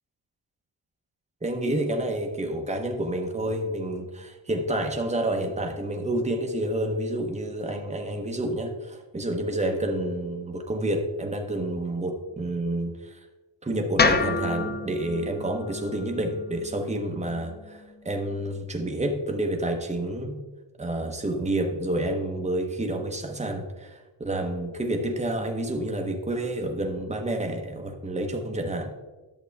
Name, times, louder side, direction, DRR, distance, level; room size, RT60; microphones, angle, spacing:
voice 1, 1.4-13.2 13.6-20.4 20.8-28.9, right 1 dB, 15° right, 3 dB, 0.9 m, -29 dB
sound 1, 14.0-18.1, left 4 dB, 25° left, 0.4 m, -29 dB
11.0 x 6.7 x 3.4 m, 1.2 s
wide cardioid pair, 165°, 48 cm